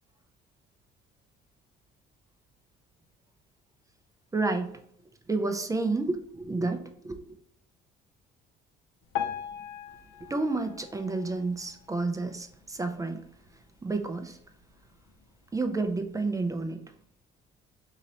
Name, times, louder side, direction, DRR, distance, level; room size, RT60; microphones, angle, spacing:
voice 1, 4.3-4.8 5.3-7.3 10.2-13.2 13.8-14.4 15.5-16.8, right 3 dB, 15° right, 6 dB, 0.5 m, -30 dB
Piano, 9.1-12.2 12.8-12.9 13.2-13.3 14.0-14.1 14.7-14.8, left 9 dB, 75° left, 0.6 m, -38 dB
2.9 x 2.8 x 3.9 m, 0.69 s
cardioid pair, 95°, 20 cm